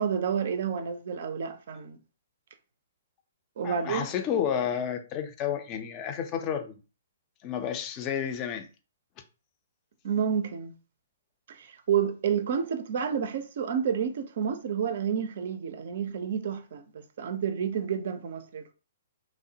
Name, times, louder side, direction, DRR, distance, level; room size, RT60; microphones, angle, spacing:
voice 1, 0.0-2.0 3.6-4.1 10.0-10.7 11.5-18.7, right 7 dB, 55° right, 0.4 m, -30 dB
voice 2, 3.6-6.8 7.4-8.6, left 8 dB, 30° left, 0.4 m, -31 dB
3.0 x 2.0 x 2.7 m
figure-of-eight pair, 125°, 0 cm